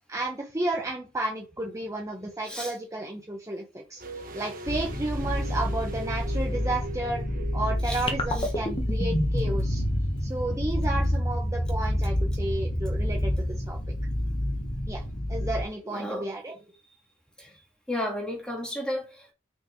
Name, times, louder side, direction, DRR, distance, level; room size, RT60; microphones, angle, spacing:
voice 1, 0.1-4.0 4.3-7.2 7.5-9.8 10.2-13.3 13.7-13.8 14.9-15.0 15.3-16.5, right 2 dB, 15° right, 1.1 m, -32 dB
sound 1, 4.0-8.9 9.1-9.2, right 2 dB, 45° right, 1.3 m, -41 dB
sound 2, 4.6-15.6, left 1 dB, 80° left, 1.5 m, -30 dB
sound 3, 8.1-14.6, equal, 25° left, 1.4 m, -31 dB
voice 2, 15.9-16.3 17.4-17.5 17.9-19.3, left 1 dB, 5° left, 2.1 m, -33 dB
6.2 x 4.6 x 4.5 m
head